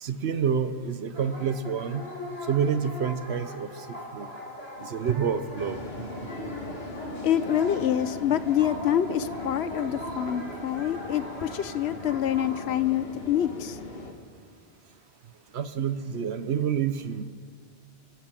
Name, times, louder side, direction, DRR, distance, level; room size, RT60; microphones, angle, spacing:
voice 1, 0.0-2.1 2.5-4.3 4.8-5.8 15.5-17.2, right 7 dB, 90° right, 12 dB, 1.1 m, -28 dB
sound 1, 1.1-12.6, equal, 25° right, 5.7 m, -40 dB
sound 2, 5.6-14.1, left 2 dB, 70° left, 2.0 m, -40 dB
voice 2, 7.2-13.8, left 10 dB, 90° left, 14 dB, 1.0 m, -26 dB
28.0 x 13.0 x 7.6 m, 2.2 s
omnidirectional pair, 1.1 m